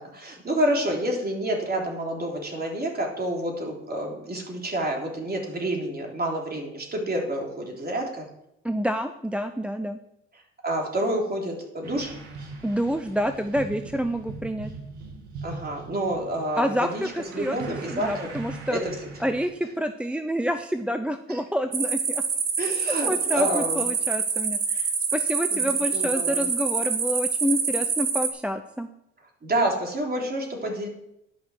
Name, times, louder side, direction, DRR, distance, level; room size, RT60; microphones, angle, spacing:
voice 1, 0.0-8.3 10.3-12.2 15.4-17.0 17.3-18.3 18.7-19.0 21.3-21.4 22.6-23.9 25.5-25.7 25.9-26.4 29.4-30.9, right 1 dB, 30° right, 0 dB, 3.5 m, -28 dB
voice 2, 8.6-10.0 12.6-14.7 16.6-17.6 17.9-18.8 19.2-22.2 22.9-28.9, equal, 5° right, 8 dB, 0.6 m, -28 dB
sound 1, 11.8-19.5, right 3 dB, 90° right, 1.9 m, -40 dB
sound 2, 21.7-28.3, right 5 dB, 50° right, 2.0 m, -26 dB
11.0 x 5.8 x 6.3 m, 0.81 s
hypercardioid pair, 60°, 31 cm